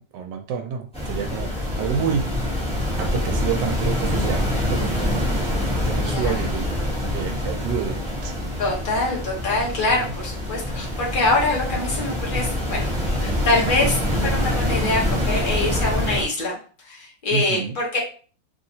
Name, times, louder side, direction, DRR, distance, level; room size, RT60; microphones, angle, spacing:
voice 1, 0.1-1.5 1.8-2.3 3.0-4.4 4.7-5.3 5.9-8.0 8.2-8.3 9.9-10.1 12.7-12.8 13.7-13.9 17.3-17.8, right 7 dB, 80° right, 4 dB, 1.2 m, -28 dB
sound 1, 0.9-16.2, left 1 dB, 5° left, 0.8 m, -25 dB
voice 2, 6.0-6.5 8.6-14.0 14.2-16.6 16.9-18.0, left 2 dB, 35° left, -3 dB, 0.9 m, -24 dB
3.1 x 2.8 x 2.7 m, 0.40 s
omnidirectional pair, 1.9 m